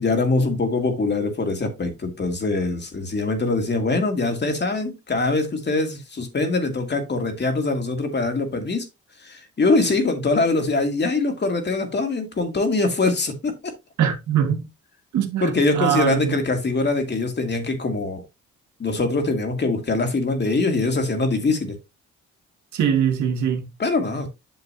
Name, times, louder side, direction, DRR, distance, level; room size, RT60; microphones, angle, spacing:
voice 1, 0.0-8.9 9.2-13.7 15.4-18.2 18.8-21.8 23.8-24.3, left 3 dB, 35° left, 2.3 m, -23 dB
voice 2, 14.0-14.7 15.1-16.2 22.7-23.6, right 8 dB, 75° right, 2.0 m, -22 dB
8.0 x 6.6 x 2.8 m
cardioid pair, 90°, 30 cm